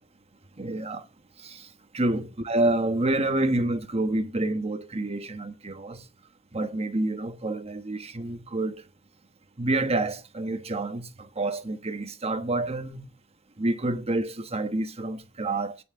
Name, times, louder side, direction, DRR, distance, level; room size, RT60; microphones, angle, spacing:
voice 1, 0.6-1.1 1.4-1.7 1.9-6.0 6.5-8.8 9.6-13.1 13.6-15.8, right 2 dB, 30° right, 1.2 m, -28 dB
9.2 x 6.2 x 8.6 m
head